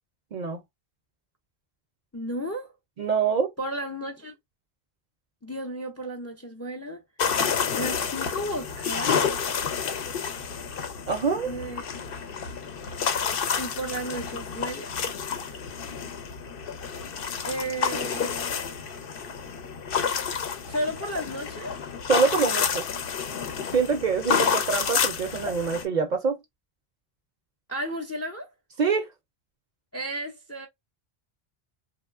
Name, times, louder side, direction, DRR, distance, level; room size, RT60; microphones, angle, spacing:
voice 1, 2.1-2.7 3.6-4.4 5.4-7.0 7.8-9.5 11.4-11.8 13.6-14.9 17.4-18.8 20.7-21.8 27.7-28.5 29.9-30.7, right 1 dB, 20° left, 0.4 m, -33 dB
voice 2, 3.0-3.5 11.1-11.5 22.1-22.9 23.7-26.4 28.8-29.1, right 5 dB, 55° right, 0.6 m, -25 dB
sound 1, 7.2-25.8, left 6 dB, 65° left, 0.7 m, -29 dB
3.0 x 2.1 x 2.3 m
omnidirectional pair, 1.0 m